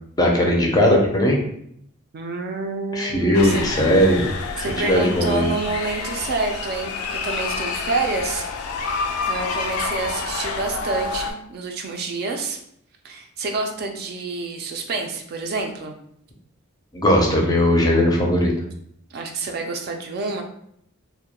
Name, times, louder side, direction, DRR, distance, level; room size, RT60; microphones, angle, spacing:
voice 1, 0.2-1.4 2.9-4.3 4.6-5.5 16.9-18.5, equal, 20° left, 0 dB, 0.4 m, -18 dB
voice 2, 2.1-3.6 4.6-8.5 9.3-12.6 13.0-16.0 19.1-20.4, right 3 dB, 50° right, 4 dB, 0.3 m, -28 dB
sound 1, 3.3-11.3, left 4 dB, 85° left, 0.3 m, -28 dB
2.2 x 2.1 x 2.8 m, 0.70 s
head